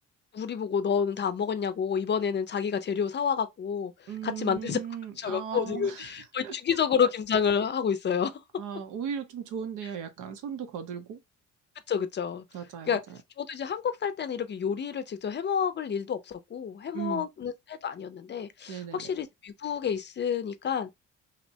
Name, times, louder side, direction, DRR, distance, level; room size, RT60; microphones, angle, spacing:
voice 1, 0.3-4.8 5.2-8.4 11.9-12.4 12.9-13.0 13.4-20.9, left 7 dB, 35° left, 0.4 m, -29 dB
voice 2, 4.1-6.2 6.4-7.1 8.6-11.2 12.5-13.2 16.9-17.3 18.7-19.1, right 7 dB, 90° right, 0.7 m, -37 dB
2.8 x 2.0 x 2.7 m
cardioid pair, 90°, 30 cm